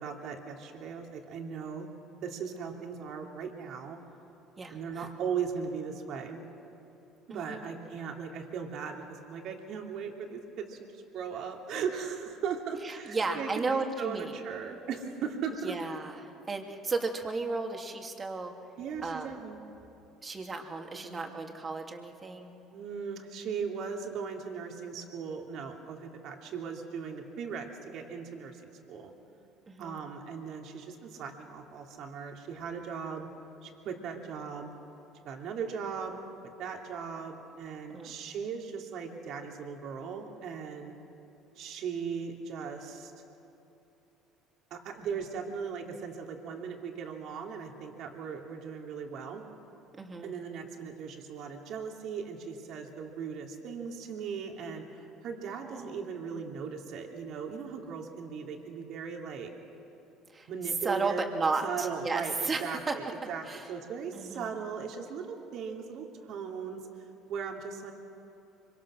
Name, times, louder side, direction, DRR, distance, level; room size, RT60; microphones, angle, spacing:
voice 1, 0.0-1.9 2.2-4.0 4.7-6.4 7.3-15.7 18.8-19.6 20.9-21.3 22.7-29.1 29.8-33.3 33.6-34.7 35.2-36.2 36.6-40.9 41.6-43.1 44.7-49.4 50.2-59.5 60.5-61.3 61.6-66.8 67.3-67.9, right 6 dB, 65° right, 2 dB, 2.9 m, -38 dB
voice 2, 4.6-5.1 7.3-7.7 12.8-14.4 15.6-18.5 19.0-19.3 20.2-22.6 29.7-30.0 37.9-38.2 50.0-50.3 55.5-55.9 60.3-60.5 60.8-63.0 63.4-63.7 64.1-64.5, right 3 dB, 30° right, 3 dB, 2.6 m, -34 dB
25.0 x 24.5 x 6.3 m, 2.9 s
supercardioid pair, 80°, 0 cm